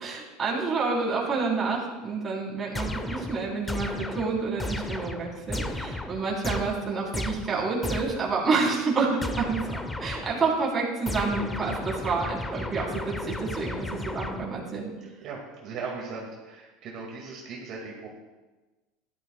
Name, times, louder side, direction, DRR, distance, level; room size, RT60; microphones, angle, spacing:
voice 1, 0.0-9.6 10.0-14.9, right 4 dB, 25° right, -4 dB, 3.4 m, -28 dB
sound 1, 2.7-8.4 9.2-10.5 11.1-14.7, left 1 dB, 10° left, 0.7 m, -34 dB
voice 2, 15.2-18.1, right 4 dB, 50° right, -2 dB, 2.0 m, -38 dB
14.5 x 11.5 x 2.3 m, 1.2 s
supercardioid pair, 130°, 0 cm